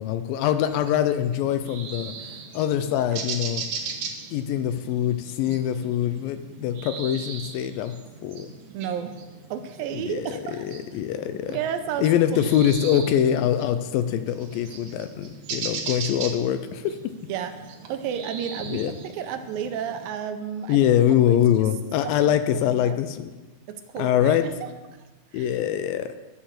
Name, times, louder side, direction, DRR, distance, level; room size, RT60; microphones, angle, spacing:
voice 1, 0.0-2.1 2.5-3.6 4.3-7.9 8.2-8.5 9.9-11.6 12.0-17.0 18.7-18.9 20.7-23.3 24.0-24.4 25.3-26.1, left 10 dB, 80° left, 10 dB, 2.2 m, -24 dB
sound 1, 0.6-20.1, right 5 dB, 65° right, 1.6 m, -39 dB
voice 2, 8.7-9.2 9.5-10.7 11.5-12.1 12.4-12.5 17.3-20.8 21.3-21.7 22.0-23.0 23.7-24.7 25.3-25.5, right 8 dB, 80° right, 8 dB, 2.3 m, -32 dB
11.0 x 6.6 x 7.4 m, 1.2 s
omnidirectional pair, 4.3 m